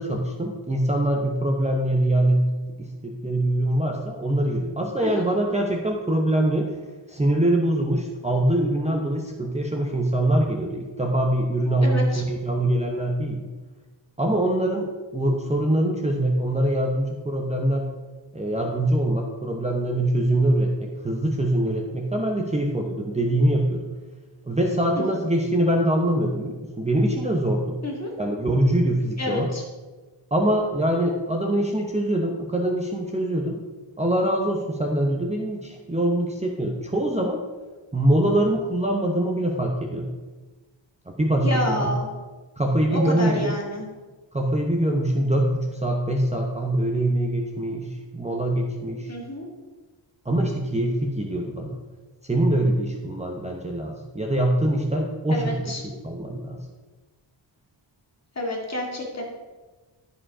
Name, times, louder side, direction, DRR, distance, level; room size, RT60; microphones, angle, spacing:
voice 1, 0.0-2.5 2.8-6.7 7.1-13.5 14.2-17.9 18.3-23.9 24.5-27.8 28.2-29.5 30.3-33.6 34.0-37.4 37.9-40.1 41.1-42.0 42.6-43.5 44.3-49.1 50.2-51.8 52.2-56.6, right 1 dB, 15° right, 1 dB, 0.9 m, -23 dB
voice 2, 11.8-12.2 25.0-25.1 27.8-28.1 29.2-29.6 41.4-42.1 42.9-43.8 49.1-49.5 55.3-55.8 58.4-59.2, left 1 dB, 35° left, -1 dB, 2.4 m, -28 dB
12.5 x 5.1 x 4.9 m, 1.3 s
wide cardioid pair, 100°, 47 cm